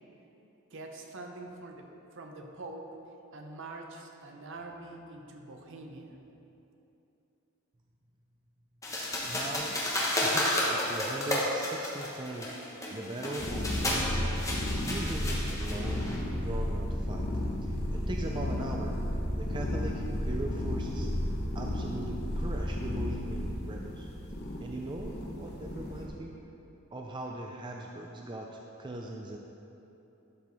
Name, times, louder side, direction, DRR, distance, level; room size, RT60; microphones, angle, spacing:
voice 1, 0.7-2.9 3.3-6.2, right 2 dB, 60° right, 2 dB, 0.8 m, -45 dB
sound 1, 8.8-16.2, left 1 dB, 15° left, 1.1 m, -32 dB
voice 2, 9.3-9.8 10.2-12.5 12.9-17.3 17.6-18.9 19.3-21.1 21.5-24.1 24.6-26.3 26.9-29.4, right 2 dB, 20° right, 0 dB, 0.4 m, -40 dB
sound 2, 13.4-26.1, left 1 dB, 50° left, 0.9 m, -33 dB
11.5 x 4.6 x 4.0 m, 2.9 s
head